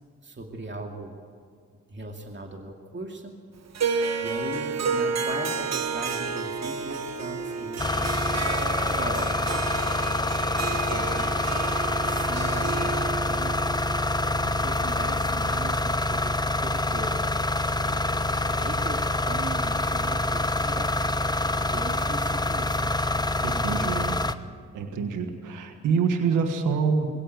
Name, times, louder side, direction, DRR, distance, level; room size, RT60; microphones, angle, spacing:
voice 1, 0.2-1.2 1.9-3.4 4.2-8.1 8.9-9.7 10.6-11.5 11.8-13.6 14.2-17.4 17.7-18.1 18.5-20.9 21.7-24.1, right 2 dB, 35° right, 2 dB, 2.6 m, -38 dB
Harp, 3.7-15.0, right 5 dB, 60° right, 1.5 m, -31 dB
sound 1, 7.8-24.3, left 2 dB, 15° left, 1.1 m, -26 dB
voice 2, 23.4-24.2 24.7-27.1, right 5 dB, 90° right, 6 dB, 1.6 m, -26 dB
21.5 x 16.5 x 9.2 m, 2.2 s
supercardioid pair, 45°, 30 cm